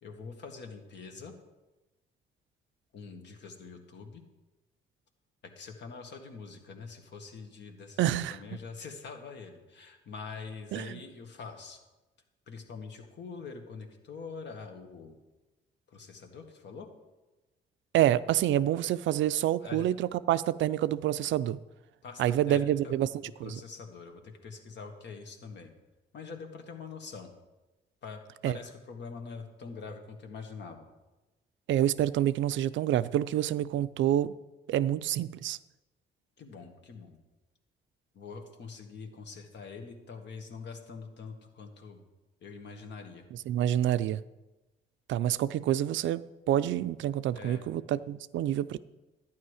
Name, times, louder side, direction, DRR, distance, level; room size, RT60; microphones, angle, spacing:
voice 1, 0.0-1.4 2.9-4.2 5.4-11.8 12.5-15.2 15.9-16.9 19.6-19.9 22.0-23.1 23.4-25.7 26.1-27.3 28.0-30.9 36.4-37.2 38.1-42.0 42.4-43.2 47.3-47.6, left 5 dB, 65° left, 4 dB, 1.8 m, -44 dB
voice 2, 8.0-8.4 10.7-11.0 17.9-21.6 22.2-23.1 23.4-23.6 28.4-28.6 31.7-34.4 34.7-35.6 43.5-44.2 45.1-48.8, right 12 dB, 70° right, 15 dB, 0.5 m, -27 dB
11.5 x 9.5 x 4.9 m, 1.1 s
cardioid pair, 90°, 20 cm